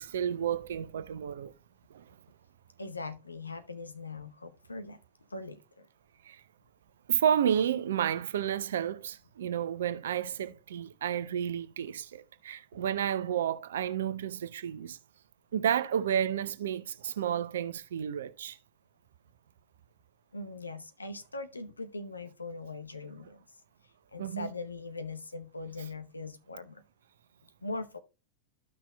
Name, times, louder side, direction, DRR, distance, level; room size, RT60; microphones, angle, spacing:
voice 1, 0.0-1.5 1.9-2.0 6.2-6.4 7.1-15.0 15.5-18.6 24.2-24.5, right 9 dB, 60° right, 0.6 m, -31 dB
voice 2, 2.8-5.0 5.3-5.9 12.7-12.8 20.3-23.4 24.1-26.8 27.6-28.0, left 3 dB, 80° left, 0.8 m, -41 dB
14.0 x 5.9 x 2.2 m
figure-of-eight pair, 90°, 0 cm